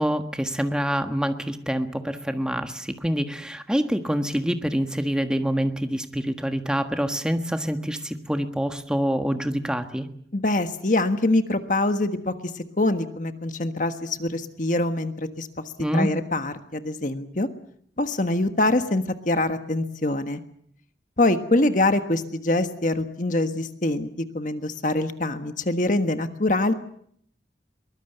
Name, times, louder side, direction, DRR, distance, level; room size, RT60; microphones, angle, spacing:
voice 1, 0.0-10.1 15.8-16.1, equal, 5° right, 7 dB, 1.5 m, -26 dB
voice 2, 10.3-15.6 15.9-17.5 18.0-20.4 21.2-24.1 24.3-26.7, left 2 dB, 45° left, 8 dB, 1.4 m, -24 dB
23.0 x 20.5 x 8.0 m, 0.67 s
head